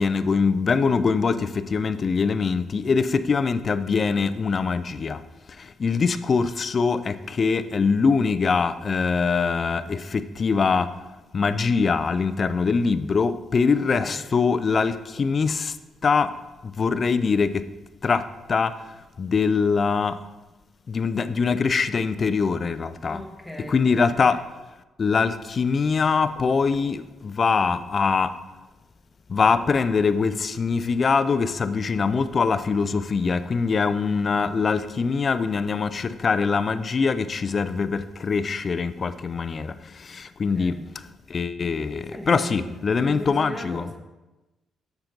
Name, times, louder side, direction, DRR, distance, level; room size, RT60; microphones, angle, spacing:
voice 1, 0.0-5.2 5.8-10.9 11.3-15.7 16.0-16.3 16.6-17.6 18.0-18.2 18.5-18.7 19.2-20.2 20.9-23.2 23.7-24.4 25.0-28.3 29.3-39.7 40.0-40.8 41.3-43.9, left 5 dB, 40° left, 0.4 m, -23 dB
voice 2, 13.7-14.2 23.1-24.1 40.5-40.8 42.1-44.0, equal, ahead, 1.4 m, -38 dB
7.1 x 6.6 x 3.9 m
cardioid pair, 90°, 0 cm